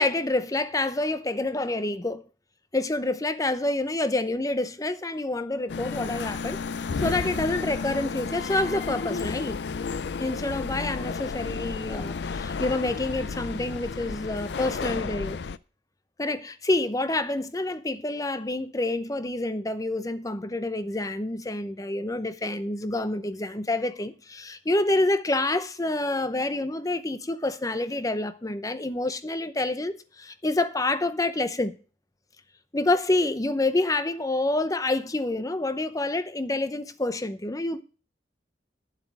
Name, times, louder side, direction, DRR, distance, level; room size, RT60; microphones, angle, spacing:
voice 1, 0.0-2.2 2.7-6.6 7.0-9.6 10.2-15.4 16.2-31.8 32.7-37.8, left 2 dB, 20° left, 0.7 m, -27 dB
sound 1, 5.7-15.6, left 5 dB, 70° left, 0.5 m, -32 dB
10.0 x 7.5 x 6.1 m
head